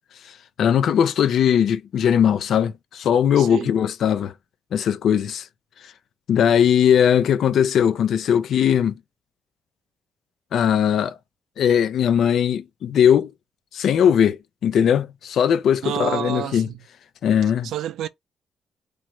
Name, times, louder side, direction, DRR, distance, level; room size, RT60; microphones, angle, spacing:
voice 1, 0.6-4.3 4.7-5.5 6.3-8.9 10.5-11.2 11.6-13.3 13.7-16.7 17.2-17.7, left 8 dB, 75° left, 0.5 m, -19 dB
voice 2, 3.4-3.7 15.8-16.7 17.6-18.1, right 11 dB, 90° right, 0.4 m, -28 dB
3.1 x 2.5 x 4.4 m
cardioid pair, 110°, 0 cm